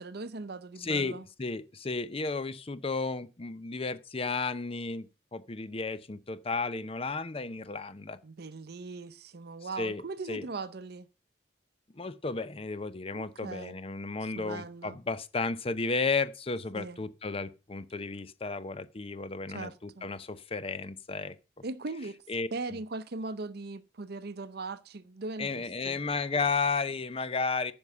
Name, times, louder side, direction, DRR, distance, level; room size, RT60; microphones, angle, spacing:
voice 1, 0.0-1.2 8.2-11.1 13.1-13.8 14.4-15.0 16.7-17.0 19.5-20.1 21.6-22.2 22.5-26.0, right 3 dB, 55° right, 0.6 m, -39 dB
voice 2, 0.8-5.1 5.3-8.2 9.8-10.0 10.3-10.4 11.9-21.4 22.3-22.5 25.4-27.7, left 4 dB, 30° left, 0.6 m, -33 dB
9.7 x 5.5 x 6.7 m
head